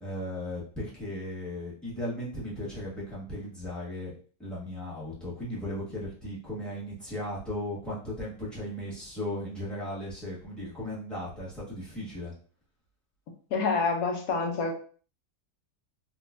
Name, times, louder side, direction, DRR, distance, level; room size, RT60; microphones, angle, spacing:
voice 1, 0.0-4.1 4.4-12.3, left 1 dB, ahead, -7 dB, 1.4 m, -36 dB
voice 2, 13.5-14.7, left 4 dB, 75° left, 3 dB, 1.2 m, -27 dB
3.6 x 3.0 x 2.5 m, 0.42 s
omnidirectional pair, 1.6 m